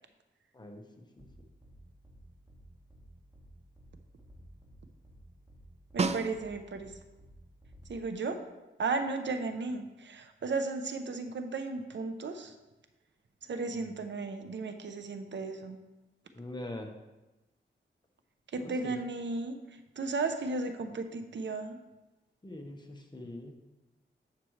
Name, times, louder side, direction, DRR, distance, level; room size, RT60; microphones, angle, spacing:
voice 1, 0.5-1.3 13.8-13.9 16.3-16.9 18.6-19.0 22.4-23.5, left 1 dB, 20° left, 2 dB, 1.2 m, -43 dB
sound 1, 1.2-1.3 1.6-1.7 2.0-2.2 2.5-2.6 2.9-3.0 3.3-3.5 3.8-3.9 4.2-4.7 5.0-5.2 5.5-5.6 5.9-6.0 6.3-6.5 6.8-6.9 7.2-7.3 7.6-7.8, equal, 15° right, 2.1 m, -55 dB
voice 2, 5.9-7.0 7.9-8.4 8.8-12.5 13.5-15.8 18.5-21.8, right 3 dB, 70° right, 7 dB, 0.7 m, -35 dB
Snare drum, 6.0-6.9 11.3-11.4, right 4 dB, 35° right, 0.4 m, -32 dB
10.0 x 6.0 x 3.2 m, 1.0 s
cardioid pair, 80°, 20 cm